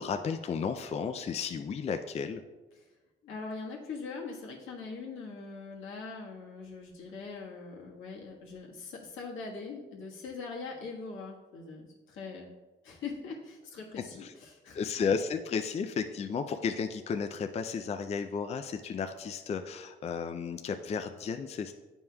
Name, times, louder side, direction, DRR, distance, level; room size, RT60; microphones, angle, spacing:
voice 1, 0.0-2.4 14.2-14.3 14.7-21.7, left 6 dB, 35° left, 7 dB, 0.4 m, -33 dB
voice 2, 3.2-12.5 12.8-14.8, left 4 dB, 80° left, -3 dB, 1.4 m, -42 dB
9.4 x 5.3 x 2.3 m, 1.2 s
cardioid pair, 90°, 20 cm